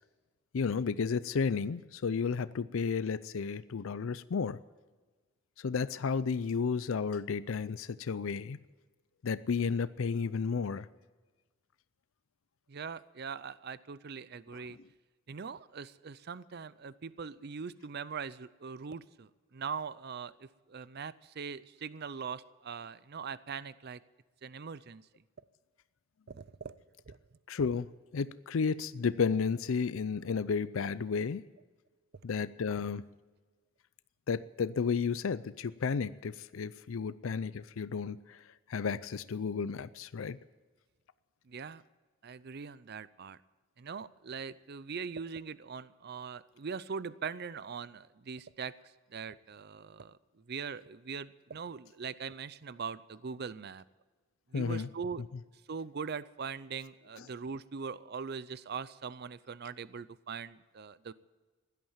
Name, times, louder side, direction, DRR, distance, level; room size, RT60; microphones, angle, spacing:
voice 1, 0.5-4.6 5.6-8.6 9.2-10.9 14.5-14.7 27.5-27.9 28.1-31.4 32.2-33.0 34.3-38.4 38.7-40.4 54.5-54.9 55.3-55.4 57.1-57.3, left 5 dB, 75° left, 16 dB, 0.5 m, -32 dB
voice 2, 12.7-14.8 15.3-24.0 24.4-25.1 26.3-26.8 27.1-27.2 41.5-41.8 42.2-43.4 43.8-53.8 54.5-55.2 55.7-61.1, right 5 dB, 50° right, 17 dB, 0.5 m, -41 dB
16.5 x 12.0 x 7.3 m, 1.3 s
head